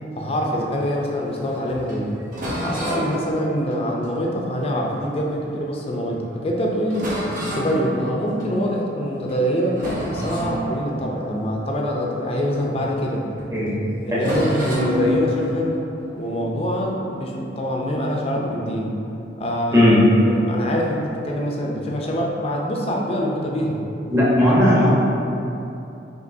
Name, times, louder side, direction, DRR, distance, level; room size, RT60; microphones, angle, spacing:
voice 1, 0.1-2.1 2.6-7.1 7.5-9.8 10.1-13.3 14.1-15.8 16.2-19.0 19.4-19.9 20.3-23.8 24.6-24.7, equal, 35° left, -1 dB, 0.5 m, -24 dB
sound 1, 0.6-5.6 6.1-6.3 6.5-6.6 6.9-8.8 9.2-9.5 9.7-13.1 13.4-13.5 14.2-17.2, equal, 50° right, 1.0 m, -30 dB
voice 2, 19.7-20.0 24.1-24.9, left 1 dB, 15° right, -7 dB, 0.9 m, -16 dB
5.1 x 3.2 x 2.7 m, 2.8 s
head